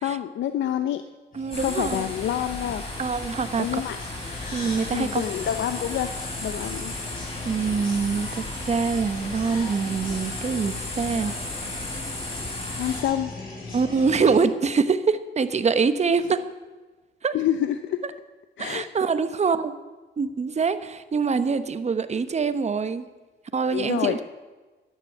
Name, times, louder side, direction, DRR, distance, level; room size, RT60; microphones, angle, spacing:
voice 1, 0.0-1.0 1.6-2.8 3.6-4.0 4.9-6.1 6.4-6.9 12.8-13.3 17.3-18.0 18.6-18.8 23.7-24.2, left 11 dB, 70° left, 9 dB, 0.7 m, -27 dB
sound 1, 1.3-14.4, left 2 dB, 45° left, 6.0 m, -39 dB
voice 2, 1.3-2.1 3.0-3.8 4.5-5.2 7.4-11.3 13.7-16.4 17.2-17.3 18.6-19.7 20.2-23.1 23.5-24.2, right 5 dB, 35° right, 11 dB, 1.1 m, -24 dB
sound 2, 1.5-13.0, left 2 dB, 30° left, 5.3 m, -35 dB
12.5 x 10.0 x 9.3 m, 1.3 s
cardioid pair, 90°, 20 cm